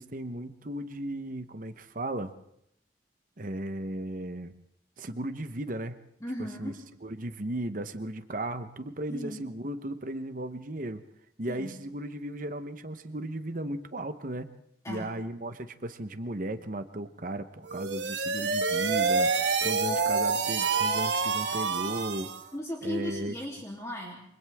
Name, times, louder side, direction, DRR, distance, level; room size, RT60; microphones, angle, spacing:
voice 1, 0.0-2.3 3.4-4.5 5.0-6.0 6.6-6.7 7.0-11.0 11.4-14.5 14.9-19.3 19.6-22.3 22.8-23.3, right 1 dB, 50° right, 9 dB, 1.1 m, -35 dB
voice 2, 6.2-6.8 9.1-9.4 11.5-11.7 14.8-15.1 22.5-24.2, left 1 dB, 20° left, -2 dB, 3.2 m, -36 dB
sound 1, 17.7-22.5, right 4 dB, 80° right, 1.6 m, -27 dB
28.5 x 25.0 x 3.6 m, 0.75 s
head